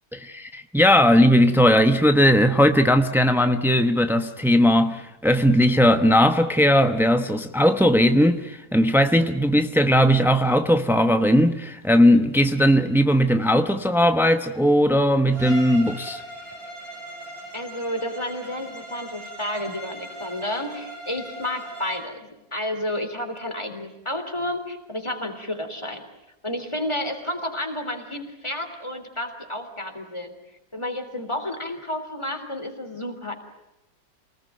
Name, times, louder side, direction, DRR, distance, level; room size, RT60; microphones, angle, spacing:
voice 1, 0.1-16.2, equal, 5° right, 0.3 m, -18 dB
Bowed string instrument, 15.3-22.1, right 1 dB, 85° right, 7.5 m, -39 dB
voice 2, 17.5-26.0 26.4-30.3 30.7-33.3, left 1 dB, 15° left, 3.4 m, -31 dB
27.5 x 19.5 x 9.3 m
omnidirectional pair, 2.0 m